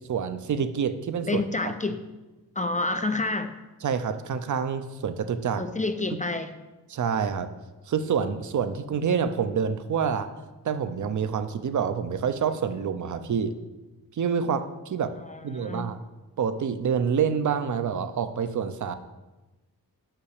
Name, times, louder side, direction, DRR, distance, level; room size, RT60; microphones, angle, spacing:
voice 1, 0.1-1.7 3.8-5.6 6.9-7.5 7.9-10.3 10.6-13.5 14.1-15.1 15.4-16.0 16.4-18.9, right 7 dB, 50° right, 11 dB, 0.6 m, -27 dB
voice 2, 1.3-2.0 2.6-3.5 5.6-6.5 15.3-15.9, left 3 dB, 20° left, 8 dB, 0.4 m, -28 dB
5.9 x 5.7 x 6.5 m, 1.1 s
wide cardioid pair, 110°, 37 cm